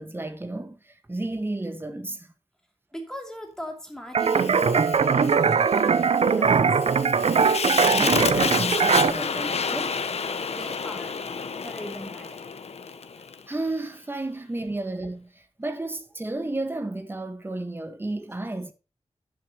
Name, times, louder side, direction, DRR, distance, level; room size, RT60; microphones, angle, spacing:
voice 1, 0.0-2.3 7.9-10.1 13.5-18.7, right 2 dB, 20° right, 1.5 m, -32 dB
voice 2, 2.9-6.7 10.5-11.2 11.6-12.4, equal, 5° left, 2.8 m, -40 dB
sound 1, 4.1-9.1, right 5 dB, 65° right, 0.8 m, -21 dB
Fire, 4.2-13.4, left 5 dB, 65° left, 1.2 m, -30 dB
10.5 x 10.0 x 3.0 m
wide cardioid pair, 120°, 11 cm